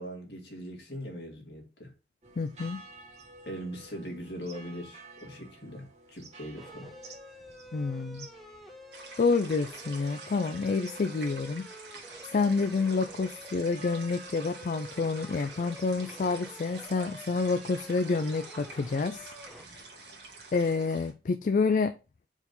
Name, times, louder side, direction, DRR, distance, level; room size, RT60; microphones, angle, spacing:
voice 1, 0.0-1.9 3.5-6.9, equal, 65° left, 2.1 m, -41 dB
sound 1, 2.2-21.1, right 3 dB, 40° right, 1.5 m, -54 dB
voice 2, 2.4-2.8 7.7-8.3 9.2-11.6 12.3-19.3 19.7-19.8 20.5-22.0, left 4 dB, 50° left, 0.4 m, -28 dB
sound 2, 6.6-19.6, equal, ahead, 0.7 m, -49 dB
sound 3, 8.9-21.1, right 3 dB, 70° right, 1.6 m, -47 dB
4.8 x 4.0 x 5.3 m
head